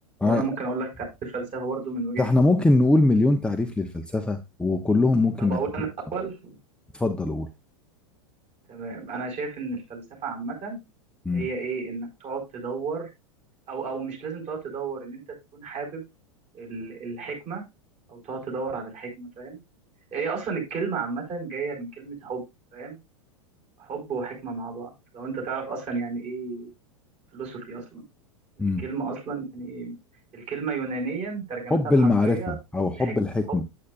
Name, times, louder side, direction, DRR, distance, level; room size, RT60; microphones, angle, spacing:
voice 1, 0.2-2.4 5.4-5.9 6.1-6.6 8.7-10.8 11.3-13.1 13.7-15.2 15.5-16.0 16.5-17.6 18.1-19.6 20.1-22.4 22.7-23.0 23.8-26.7 27.3-28.0 28.8-30.0 30.3-32.5 33.0-33.1 33.5-33.6, right 4 dB, 35° right, 0 dB, 5.2 m, -32 dB
voice 2, 2.2-5.6 6.9-7.5 11.3-11.5 28.6-28.8 31.7-33.6, left 2 dB, 5° left, 5 dB, 0.7 m, -22 dB
8.5 x 8.5 x 2.5 m, 0.23 s
hypercardioid pair, 95°, 18 cm